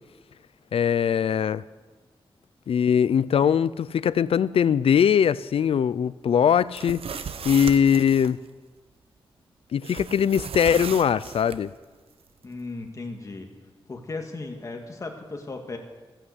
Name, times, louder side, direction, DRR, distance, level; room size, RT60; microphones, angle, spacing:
voice 1, 0.7-1.6 2.7-7.0 7.4-8.4 9.7-11.7, left 8 dB, 85° left, 0.4 m, -21 dB
sound 1, 6.6-8.3 9.8-11.6, right 6 dB, 90° right, 0.8 m, -36 dB
voice 2, 12.4-13.5 13.9-15.8, left 3 dB, 35° left, 1.9 m, -36 dB
15.5 x 11.5 x 8.1 m
wide cardioid pair, 170°, 10 cm